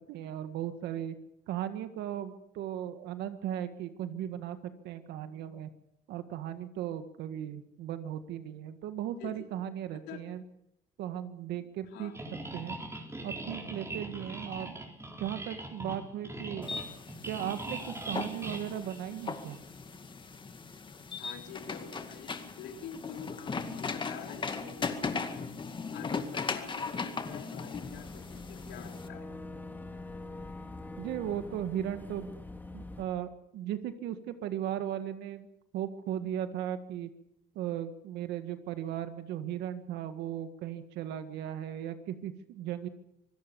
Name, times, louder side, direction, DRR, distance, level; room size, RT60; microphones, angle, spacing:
voice 1, 0.1-1.2 1.5-5.7 6.1-10.4 11.0-12.1 12.5-12.8 13.2-14.8 15.2-16.7 17.2-19.6 31.0-32.3 32.7-35.5 35.7-37.1 37.6-42.9, right 10 dB, 85° right, 10 dB, 1.8 m, -37 dB
voice 2, 11.5-12.2 15.1-15.2 21.2-25.6 25.9-29.3 41.7-41.8, left 7 dB, 85° left, 4 dB, 4.0 m, -46 dB
sound 1, 12.1-19.6, right 2 dB, 15° right, 3.8 m, -41 dB
sound 2, 16.6-29.1, left 4 dB, 30° left, 2.2 m, -38 dB
Boat Water vehicle / Engine, 27.7-33.0, left 2 dB, 10° left, 2.3 m, -44 dB
25.5 x 17.0 x 7.1 m, 0.79 s
cardioid pair, 110°, 17 cm